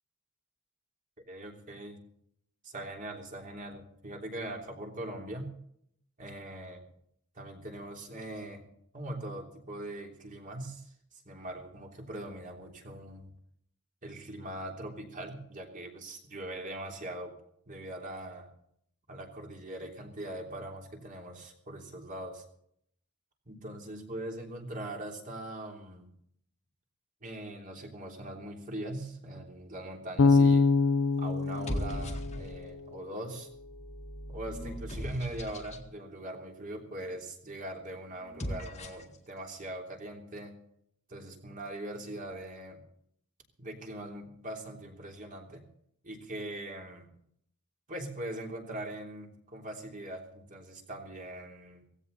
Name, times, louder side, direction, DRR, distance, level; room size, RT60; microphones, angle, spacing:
voice 1, 1.3-2.0 2.6-5.5 6.2-6.8 7.3-8.6 8.9-10.9 11.2-13.3 14.0-17.4 17.7-18.5 19.1-22.4 23.5-26.1 27.2-30.7 31.2-33.5 34.3-40.5 41.1-42.8 43.6-45.6 46.0-47.1 47.9-51.8, right 1 dB, 35° right, 1 dB, 3.3 m, -41 dB
Bass guitar, 30.2-33.2, left 4 dB, 60° left, 0.7 m, -25 dB
sound 1, 30.2-30.6 31.4-32.8 33.5-35.9 38.2-39.2, equal, 30° left, 1.8 m, -39 dB
17.0 x 16.0 x 4.1 m, 0.67 s
head